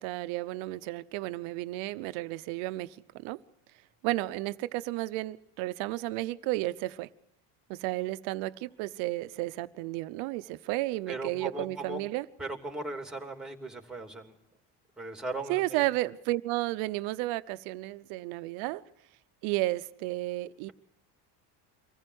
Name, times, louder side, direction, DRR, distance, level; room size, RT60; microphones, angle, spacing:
voice 1, 0.0-3.0 3.2-3.4 4.0-7.1 7.7-12.3 15.5-18.8 19.4-20.7, right 18 dB, 85° right, 14 dB, 0.9 m, -32 dB
voice 2, 11.1-12.0 12.4-14.3 15.0-15.8, right 2 dB, ahead, 4 dB, 2.9 m, -38 dB
24.5 x 15.5 x 8.0 m, 0.79 s
supercardioid pair, 100°, 47 cm